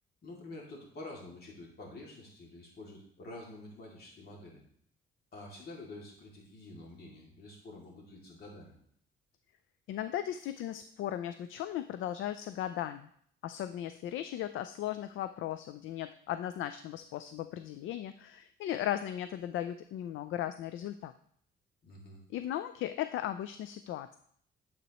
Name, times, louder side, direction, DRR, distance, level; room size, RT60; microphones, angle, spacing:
voice 1, 0.2-4.6 5.3-8.7 21.8-22.2, left 2 dB, 55° left, -3 dB, 2.4 m, -48 dB
voice 2, 9.9-13.1 13.4-21.1 22.3-24.2, left 11 dB, 80° left, 11 dB, 0.4 m, -37 dB
9.2 x 7.3 x 3.0 m, 0.64 s
cardioid pair, 90°, 20 cm